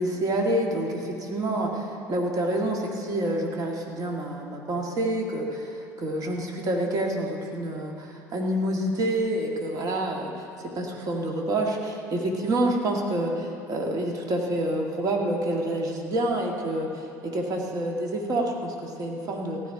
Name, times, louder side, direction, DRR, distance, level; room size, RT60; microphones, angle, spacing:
voice 1, 0.0-10.5 10.8-16.9 17.2-19.6, right 1 dB, 40° right, 0 dB, 2.0 m, -28 dB
15.5 x 5.3 x 9.8 m, 2.7 s
hypercardioid pair, 70°, 9 cm